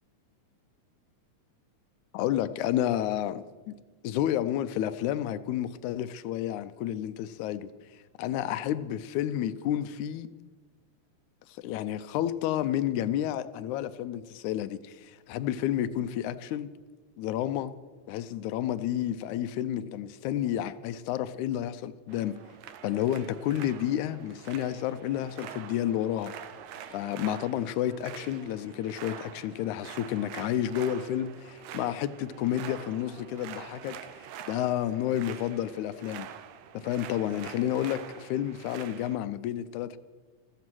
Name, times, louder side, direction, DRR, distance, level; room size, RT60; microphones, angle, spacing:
voice 1, 2.1-3.7 4.0-10.3 11.5-16.7 17.2-17.7 18.1-22.4 22.8-26.4 26.9-36.3 36.7-40.0, left 11 dB, 80° left, 2.0 m, -30 dB
sound 1, 22.1-39.2, right 9 dB, 75° right, 2.0 m, -45 dB
15.5 x 13.0 x 6.1 m
omnidirectional pair, 3.5 m